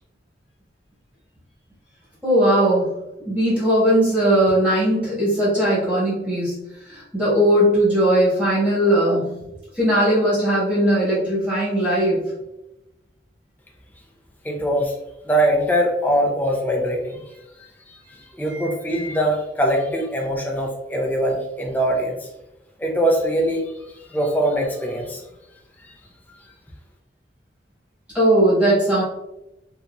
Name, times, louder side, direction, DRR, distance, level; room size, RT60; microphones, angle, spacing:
voice 1, 2.2-3.0 3.3-9.4 9.7-12.3 18.4-18.7 28.1-29.0, right 1 dB, 5° right, -9 dB, 1.3 m, -19 dB
voice 2, 14.4-14.9 15.3-17.2 17.9-22.3 22.8-25.2 25.8-25.9, right 1 dB, 10° left, 0 dB, 0.4 m, -22 dB
2.9 x 2.5 x 2.3 m, 0.92 s
head